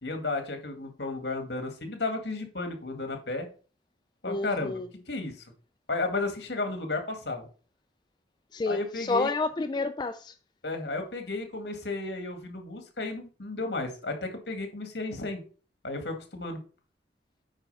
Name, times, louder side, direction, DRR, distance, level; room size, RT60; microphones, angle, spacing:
voice 1, 0.0-3.5 4.2-4.8 5.1-5.3 5.9-7.5 8.7-9.3 10.6-15.4 15.8-16.6, left 3 dB, 70° left, 2.0 m, -33 dB
voice 2, 4.2-4.9 8.5-10.3, left 3 dB, 25° left, 0.4 m, -29 dB
8.9 x 4.1 x 5.5 m
head